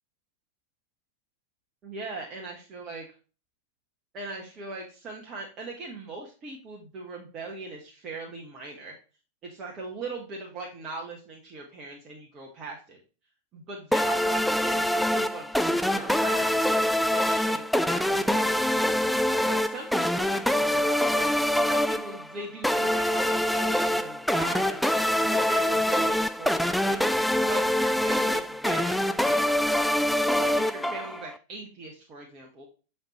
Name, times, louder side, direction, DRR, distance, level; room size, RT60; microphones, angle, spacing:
voice 1, 1.8-3.1 4.1-8.9 9.4-13.0 13.5-16.6 17.0-18.8 19.4-21.3 21.7-24.8 25.3-27.2 27.4-29.4 30.4-32.7, right 3 dB, 30° right, -1 dB, 1.3 m, -40 dB
sound 1, 13.9-31.4, left 1 dB, ahead, 0.3 m, -25 dB
7.2 x 4.4 x 3.1 m, 0.35 s
figure-of-eight pair, 90°, 0 cm